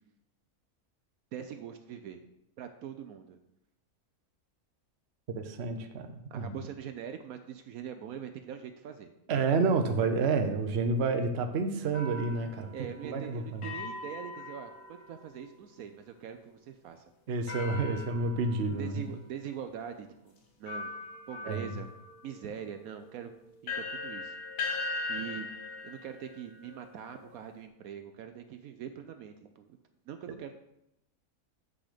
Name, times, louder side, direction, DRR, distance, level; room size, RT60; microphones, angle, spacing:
voice 1, 1.3-2.2 2.6-3.4 6.3-9.1 12.7-17.1 17.9-18.0 18.8-20.9 21.3-21.9 22.2-23.3 23.6-24.4 25.1-25.6 25.8-29.8 30.1-30.5, right 8 dB, 70° right, 8 dB, 1.0 m, -43 dB
voice 2, 5.3-6.1 6.3-6.5 9.3-12.7 13.0-13.7 17.3-19.0 21.4-21.7, right 4 dB, 50° right, 6 dB, 1.0 m, -29 dB
sound 1, 11.9-15.4 17.5-19.0 19.7-19.8 20.7-27.5, left 3 dB, 90° left, 1.6 m, -41 dB
7.7 x 6.1 x 5.0 m, 0.84 s
omnidirectional pair, 1.6 m